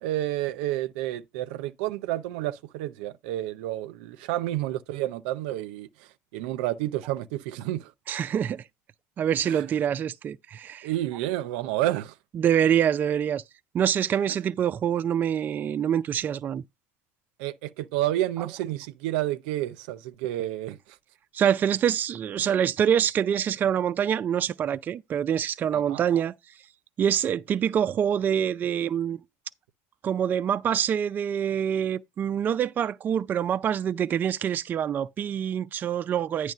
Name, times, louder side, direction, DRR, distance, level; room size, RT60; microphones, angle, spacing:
voice 1, 0.0-5.9 6.3-7.9 9.4-9.6 10.8-12.1 17.4-20.8 25.7-26.0, right 14 dB, 85° right, 0.6 m, -30 dB
voice 2, 8.1-8.6 9.2-10.9 12.3-13.4 13.7-16.6 21.3-26.3 27.0-29.2 30.0-36.5, right 9 dB, 35° right, 0.4 m, -25 dB
9.1 x 3.2 x 6.5 m
supercardioid pair, 115°, 6 cm